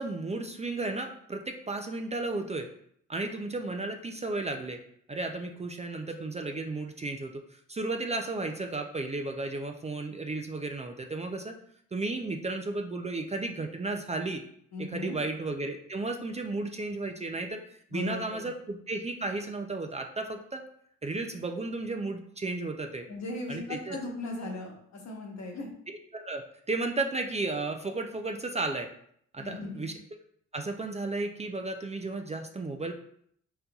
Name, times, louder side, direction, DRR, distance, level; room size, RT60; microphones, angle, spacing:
voice 1, 0.0-2.7 3.1-4.8 5.1-11.6 11.9-14.4 14.8-17.6 17.9-20.6 21.0-23.1 23.5-24.0 26.1-28.9 29.3-29.9 30.5-32.9, right 2 dB, 25° right, 4 dB, 0.4 m, -34 dB
voice 2, 14.7-15.2 17.9-18.5 23.1-25.7 29.4-29.8, left 2 dB, 65° left, 1 dB, 1.1 m, -37 dB
4.1 x 3.9 x 2.3 m, 0.67 s
cardioid pair, 70°, 29 cm